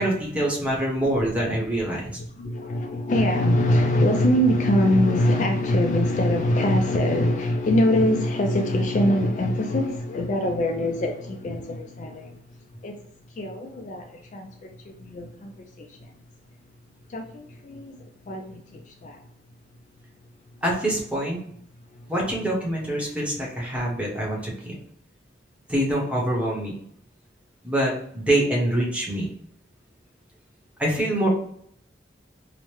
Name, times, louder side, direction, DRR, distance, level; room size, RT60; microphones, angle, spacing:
voice 1, 0.0-2.2 20.6-21.4 22.1-24.8 25.7-26.7 27.6-29.3 30.8-31.3, right 1 dB, 5° right, 0.9 m, -25 dB
voice 2, 2.2-12.4 12.8-13.0 13.3-16.1 17.1-19.2 21.9-22.1, left 1 dB, 40° left, 0.3 m, -23 dB
4.8 x 2.1 x 3.0 m
head